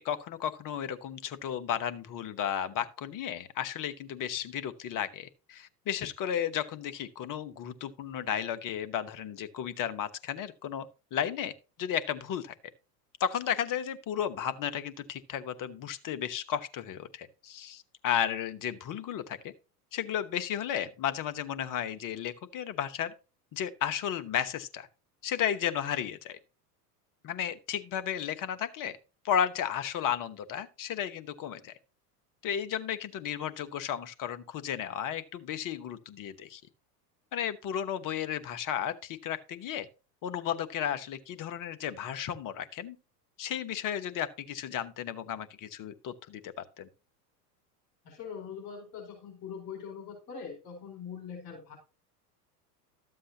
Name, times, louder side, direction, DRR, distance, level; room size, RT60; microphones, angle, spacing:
voice 1, 0.0-11.5 11.8-12.5 13.2-19.5 19.9-23.1 23.5-24.9 25.2-26.4 27.2-29.0 29.2-31.7 32.4-36.6 37.3-39.9 40.2-43.0 43.4-46.9, left 9 dB, 40° left, 1.1 m, -34 dB
voice 2, 48.0-51.8, left 6 dB, 65° left, 4.7 m, -42 dB
12.5 x 7.7 x 2.8 m
hypercardioid pair, 85°, 48 cm